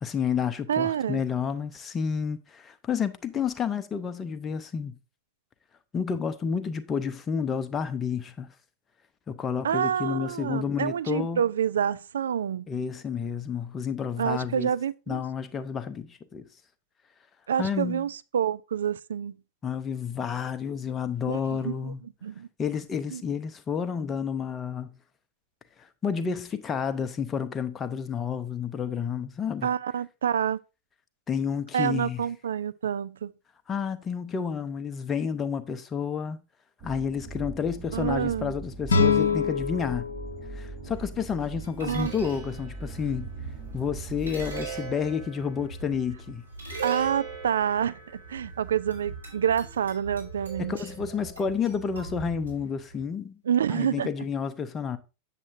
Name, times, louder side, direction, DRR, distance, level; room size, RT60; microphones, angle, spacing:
voice 1, 0.0-5.0 5.9-8.5 9.3-11.4 12.7-14.7 15.1-16.5 17.6-18.1 19.6-22.0 22.6-24.9 25.8-29.7 31.3-32.2 33.7-36.4 36.8-40.1 40.5-43.3 43.7-46.4 50.6-53.4 53.7-55.0, left 6 dB, 20° left, 0.6 m, -30 dB
voice 2, 0.7-1.2 9.6-12.7 14.2-15.2 17.5-19.3 21.3-22.5 23.1-23.2 29.6-30.6 31.7-33.3 37.9-38.5 41.8-42.1 46.8-50.7 53.4-54.1, right 8 dB, 65° right, 0.3 m, -28 dB
sound 1, 36.8-45.1, right 4 dB, 30° right, 1.7 m, -41 dB
sound 2, 38.9-41.9, left 5 dB, 70° left, 0.8 m, -27 dB
sound 3, 40.9-53.0, right 5 dB, 85° right, 3.7 m, -40 dB
7.4 x 7.4 x 2.6 m
figure-of-eight pair, 90°, 0 cm